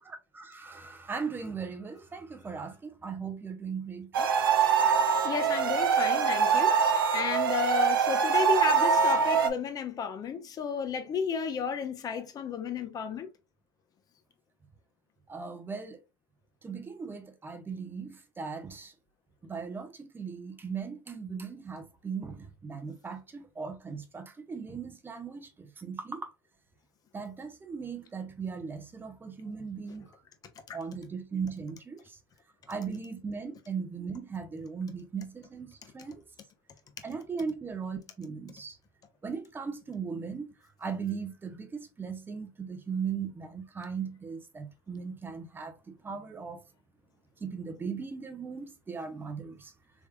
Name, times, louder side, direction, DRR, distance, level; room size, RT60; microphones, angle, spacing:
voice 1, 0.1-4.3 8.1-8.5 15.3-16.0 16.6-18.9 19.4-26.3 27.1-30.1 30.7-32.2 32.7-36.2 37.0-38.8 39.2-40.5 40.8-46.6 47.4-49.7, right 5 dB, 20° right, 0.7 m, -38 dB
sound 1, 4.1-9.5, right 6 dB, 85° right, 0.5 m, -24 dB
voice 2, 5.0-13.3 30.7-30.8, left 7 dB, 35° left, 0.8 m, -33 dB
3.5 x 3.2 x 2.3 m
hypercardioid pair, 90°, 11 cm